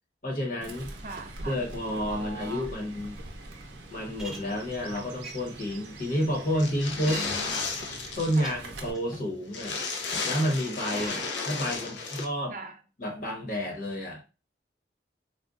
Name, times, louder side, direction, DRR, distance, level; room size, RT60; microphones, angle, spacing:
voice 1, 0.2-0.9 1.4-3.1 3.9-7.2 8.2-9.8 10.2-12.5 13.0-14.3, equal, 50° left, 1.1 m, -30 dB
Fowl / Bird, 0.6-8.9, right 2 dB, 90° right, 0.7 m, -43 dB
voice 2, 1.0-1.6 7.0-7.7 8.4-8.6 10.9-11.3 12.5-12.8, right 2 dB, 45° right, 0.5 m, -41 dB
sound 1, 4.2-4.4 4.9-5.0 5.2-5.3 6.1-6.2 7.1-7.6 8.4-8.5 8.9-9.2 10.1-10.5 11.0-11.1, right 2 dB, ahead, 0.8 m, -39 dB
sound 2, 6.6-8.5 8.8-8.9 9.1-9.2 9.5-12.2, left 4 dB, 85° left, 0.6 m, -33 dB
3.7 x 2.3 x 2.4 m
head